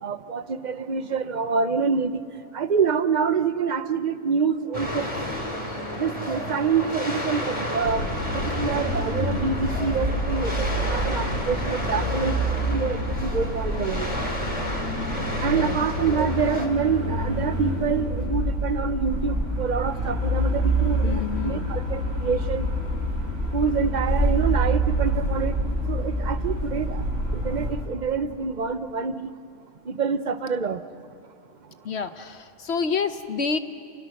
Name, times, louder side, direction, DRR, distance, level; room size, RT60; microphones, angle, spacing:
voice 1, 0.0-2.2 2.5-5.1 6.0-8.1 8.3-14.1 15.4-22.7 23.5-25.5 25.9-27.0 27.3-29.3 29.9-30.8, right 5 dB, 40° right, 11 dB, 0.8 m, -26 dB
sound 1, 4.7-16.7, left 1 dB, 25° left, 3.1 m, -31 dB
sound 2, 7.8-27.7, right 1 dB, 65° right, 6.8 m, -27 dB
voice 2, 21.0-21.7 31.8-33.6, left 5 dB, 50° left, 9 dB, 1.1 m, -28 dB
29.0 x 29.0 x 6.5 m, 2.3 s
omnidirectional pair, 1.5 m